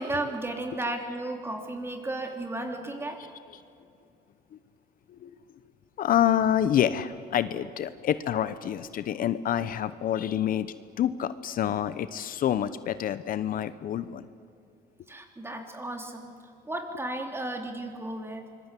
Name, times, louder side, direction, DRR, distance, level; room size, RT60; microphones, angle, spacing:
voice 1, 0.0-3.2 15.1-16.3 16.6-18.4, right 2 dB, 15° right, 4 dB, 3.3 m, -34 dB
voice 2, 6.0-14.3, left 10 dB, 55° left, 13 dB, 0.9 m, -27 dB
25.5 x 22.0 x 8.4 m, 2.5 s
cardioid pair, 110°, 17 cm